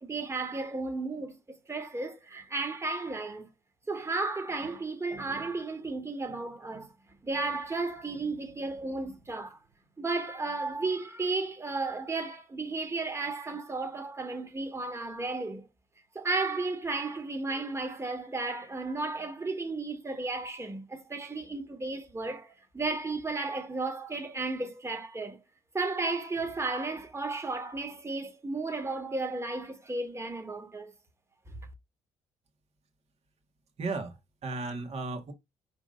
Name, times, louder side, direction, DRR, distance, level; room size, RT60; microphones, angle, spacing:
voice 1, 0.0-3.5 3.9-6.9 7.2-9.6 10.0-15.6 16.2-25.4 25.7-30.9, right 3 dB, 20° right, 1.9 m, -34 dB
voice 2, 33.8-35.3, right 3 dB, 50° right, 1.9 m, -35 dB
5.0 x 3.7 x 5.2 m
supercardioid pair, 75°, 14 cm